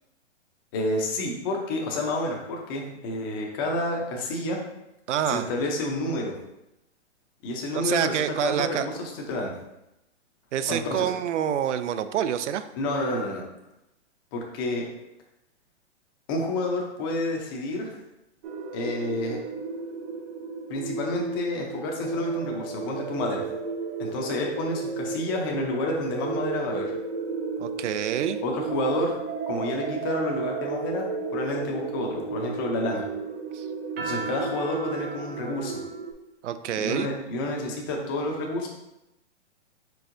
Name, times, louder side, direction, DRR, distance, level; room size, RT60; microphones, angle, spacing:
voice 1, 0.7-4.6 5.3-6.3 7.4-9.5 10.7-11.1 12.7-13.4 14.3-14.8 16.3-18.0 18.7-19.4 20.7-23.4 24.0-26.9 28.4-29.2 29.5-33.1 34.0-35.8 36.8-38.7, left 1 dB, 20° left, 0 dB, 0.5 m, -29 dB
voice 2, 5.1-5.5 7.7-8.9 10.5-12.6 27.6-28.4 33.5-33.7 36.4-37.1, right 9 dB, 80° right, 12 dB, 0.5 m, -27 dB
sound 1, 18.4-36.1, right 4 dB, 55° right, 0.8 m, -33 dB
4.6 x 4.4 x 2.5 m, 0.88 s
hypercardioid pair, 160°, 35 cm